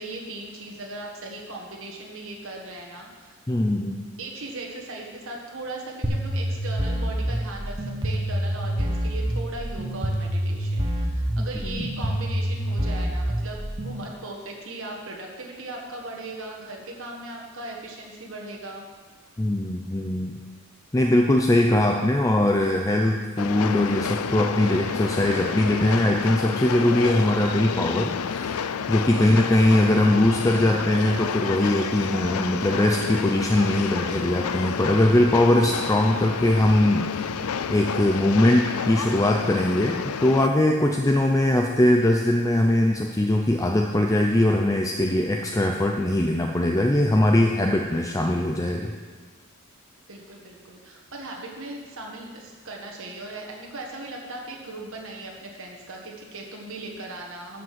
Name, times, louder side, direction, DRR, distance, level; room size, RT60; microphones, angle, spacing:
voice 1, 0.0-3.4 4.2-7.7 8.0-18.9 29.2-29.6 50.1-57.6, right 2 dB, 60° right, -1 dB, 1.6 m, -38 dB
voice 2, 3.5-4.0 11.4-11.9 19.4-20.4 20.9-48.9, left 1 dB, 15° left, 2 dB, 0.5 m, -21 dB
sound 1, 6.0-14.0, equal, 20° right, 1.0 m, -27 dB
Train, 23.4-40.5, left 6 dB, 80° left, 0.5 m, -30 dB
12.0 x 5.2 x 7.5 m, 1.4 s
head